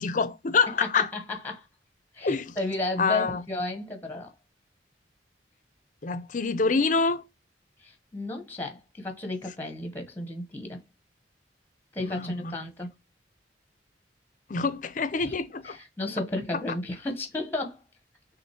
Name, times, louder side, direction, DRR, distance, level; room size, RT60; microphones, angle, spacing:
voice 1, 0.0-1.1 2.2-2.6 3.0-3.4 6.0-7.2 12.0-12.5 14.5-15.8, left 4 dB, 45° left, 0.5 m, -26 dB
voice 2, 1.0-1.6 2.1-4.3 7.8-10.8 11.9-12.9 15.3-15.4 15.6-17.8, left 2 dB, 10° left, 0.9 m, -33 dB
6.1 x 2.5 x 2.9 m
head